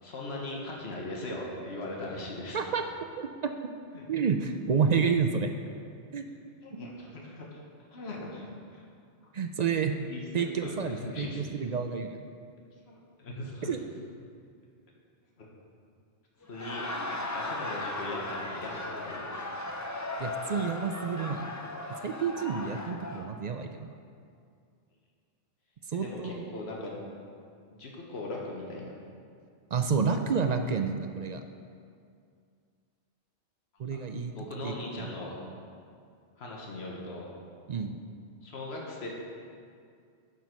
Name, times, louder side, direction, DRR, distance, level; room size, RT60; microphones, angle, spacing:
voice 1, 0.0-2.6 3.9-4.0 6.6-7.6 7.9-8.8 10.0-11.6 12.9-13.8 15.4-15.5 16.5-16.9 17.3-19.5 25.9-26.9 27.7-28.9 33.9-34.0 34.3-35.4 36.4-37.3 38.4-39.1, left 2 dB, 65° left, -2 dB, 1.5 m, -39 dB
voice 2, 3.2-3.5 4.1-5.5 6.1-6.3 9.3-9.9 10.3-12.3 13.7-13.8 20.2-21.4 22.0-23.9 25.9-26.4 29.7-31.4 33.8-34.3 34.6-35.1 37.7-38.0, right 6 dB, 55° right, 6 dB, 0.5 m, -29 dB
Laughter, 16.4-23.3, left 2 dB, 20° left, 0.5 m, -37 dB
9.3 x 5.8 x 6.0 m, 2.3 s
omnidirectional pair, 1.2 m